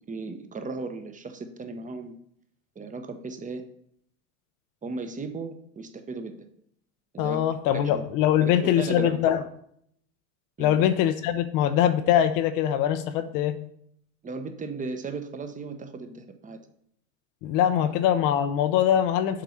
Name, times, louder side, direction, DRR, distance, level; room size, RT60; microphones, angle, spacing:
voice 1, 0.1-2.1 2.7-3.6 4.8-6.4 7.1-7.4 7.7-8.1 8.4-9.2 10.6-10.8 14.2-16.6 17.8-17.9, right 4 dB, 20° right, 8 dB, 1.0 m, -36 dB
voice 2, 7.2-9.4 10.6-13.6 17.4-19.4, left 10 dB, 50° left, 10 dB, 0.7 m, -23 dB
7.5 x 4.6 x 5.6 m, 0.68 s
hypercardioid pair, 90°, 42 cm